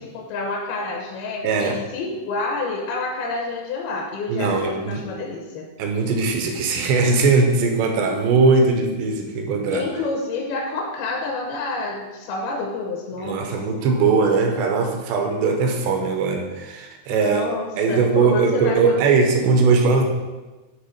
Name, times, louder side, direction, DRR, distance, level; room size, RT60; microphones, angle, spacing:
voice 1, 0.0-5.7 9.7-13.4 17.1-19.2, left 3 dB, 75° left, -1 dB, 2.5 m, -28 dB
voice 2, 1.4-1.8 4.3-5.0 5.8-9.9 13.2-17.4 17.8-20.0, right 4 dB, 85° right, 3 dB, 2.9 m, -20 dB
8.0 x 3.4 x 5.6 m, 1.2 s
omnidirectional pair, 5.1 m